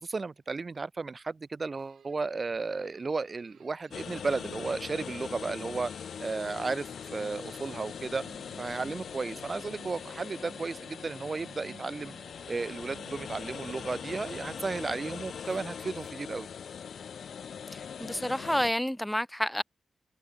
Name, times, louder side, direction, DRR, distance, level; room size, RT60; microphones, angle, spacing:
voice 1, 0.0-5.9 6.2-8.2 8.6-12.1 12.5-16.5, right 4 dB, 35° right, 0.6 m, -34 dB
sound 1, 1.7-14.9, right 8 dB, 85° right, 2.4 m, -57 dB
sound 2, 3.9-18.7, left 7 dB, 75° left, 0.5 m, -41 dB
sound 3, 10.6-16.1, left 4 dB, 45° left, 1.8 m, -57 dB
voice 2, 17.7-19.6, equal, 5° left, 0.3 m, -30 dB
wide cardioid pair, 105°, 0 cm